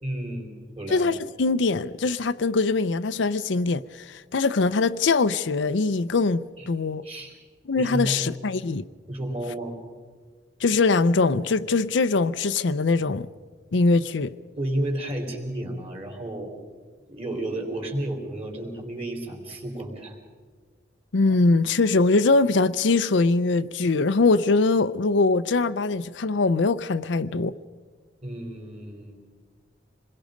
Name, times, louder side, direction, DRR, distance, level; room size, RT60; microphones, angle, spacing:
voice 1, 0.0-1.2 6.6-6.7 7.0-7.3 7.7-8.2 9.1-9.7 14.6-16.5 17.1-20.2 28.2-29.2, right 1 dB, 35° right, 4.1 m, -32 dB
voice 2, 0.9-7.0 7.7-8.8 10.6-13.3 13.7-14.3 21.1-27.5, left 3 dB, 85° left, 0.6 m, -22 dB
26.5 x 21.0 x 5.2 m
head